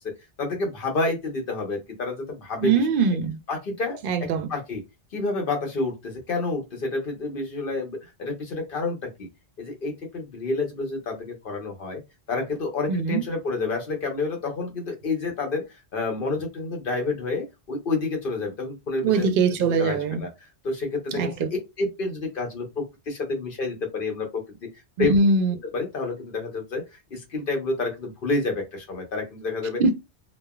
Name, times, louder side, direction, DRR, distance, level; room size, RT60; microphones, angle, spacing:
voice 1, 0.4-2.8 3.5-4.8 5.1-9.3 9.6-12.0 12.3-20.3 20.6-21.3 21.8-24.7 25.0-25.1 25.7-26.8 27.1-29.8, left 3 dB, 55° left, 1.0 m, -29 dB
voice 2, 2.6-3.4 4.0-4.5 12.9-13.2 19.0-20.2 21.2-21.5 25.1-25.5 29.8-29.9, right 4 dB, 60° right, 0.6 m, -22 dB
3.2 x 2.1 x 2.2 m
omnidirectional pair, 1.2 m